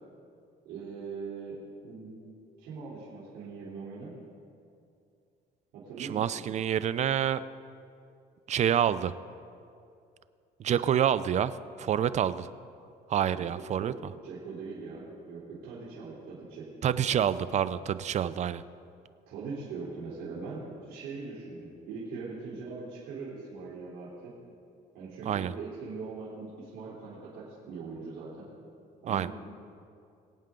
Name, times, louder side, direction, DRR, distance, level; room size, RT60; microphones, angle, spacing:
voice 1, 0.6-2.1 2.6-4.1 5.7-6.2 13.6-16.7 19.3-24.3 24.9-28.5 29.0-29.3, right 4 dB, 85° right, -8 dB, 3.6 m, -41 dB
voice 2, 6.0-7.4 8.5-9.1 10.6-11.5 11.8-12.5 13.1-14.1 16.8-18.6 25.3-25.5 29.1-29.3, right 9 dB, 45° right, 15 dB, 0.5 m, -27 dB
22.5 x 8.8 x 3.8 m, 2.5 s
cardioid pair, 110°, 17 cm